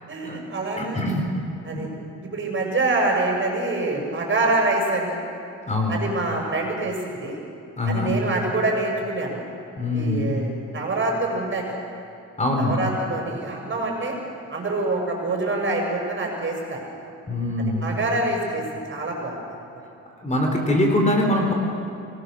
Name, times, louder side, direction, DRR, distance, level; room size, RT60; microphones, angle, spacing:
voice 1, 0.1-1.0 1.6-1.9 2.2-5.2 5.9-7.4 7.8-9.4 9.9-11.8 12.6-14.1 14.5-16.8 17.8-19.4 20.5-20.7, right 2 dB, 40° right, 0 dB, 6.7 m, -25 dB
voice 2, 0.8-1.3 1.7-1.9 5.7-6.0 7.8-8.1 9.8-10.3 12.4-12.8 17.3-17.9 20.2-21.5, left 1 dB, 25° left, 1 dB, 4.7 m, -23 dB
26.0 x 19.5 x 6.6 m, 2.8 s
cardioid pair, 90°, 30 cm